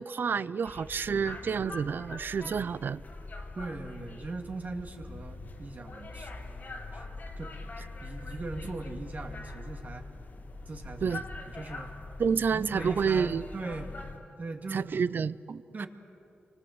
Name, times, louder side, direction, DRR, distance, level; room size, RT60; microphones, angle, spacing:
voice 1, 0.0-3.0 11.0-11.2 12.2-13.4 14.7-15.9, right 6 dB, 60° right, 18 dB, 0.5 m, -29 dB
sound 1, 0.6-14.2, left 2 dB, 50° left, 3.0 m, -43 dB
voice 2, 1.1-1.6 2.4-2.6 3.5-6.4 6.9-7.1 7.4-7.7 8.0-10.1 10.7-11.2 11.4-11.9 12.5-14.0 14.4-15.0 15.7-15.9, right 3 dB, 45° right, 4 dB, 2.4 m, -40 dB
29.5 x 25.0 x 7.9 m, 2.6 s
wide cardioid pair, 100°, 4 cm